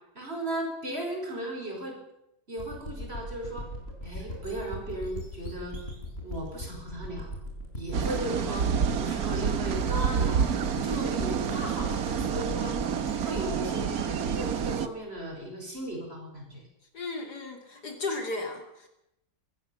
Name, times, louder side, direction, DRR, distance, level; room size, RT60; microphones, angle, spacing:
voice 1, 0.1-2.0 2.5-3.7 4.0-5.7 6.2-7.3 7.7-10.5 10.8-12.8 13.2-16.6, right 1 dB, 30° right, 1 dB, 6.1 m, -36 dB
sound 1, 2.6-15.2, left 1 dB, 30° left, 5.4 m, -40 dB
sound 2, 7.9-14.9, right 7 dB, 55° right, 1.5 m, -28 dB
voice 2, 16.9-18.9, left 3 dB, 60° left, 4 dB, 3.4 m, -35 dB
24.0 x 15.0 x 7.2 m, 0.84 s
omnidirectional pair, 2.0 m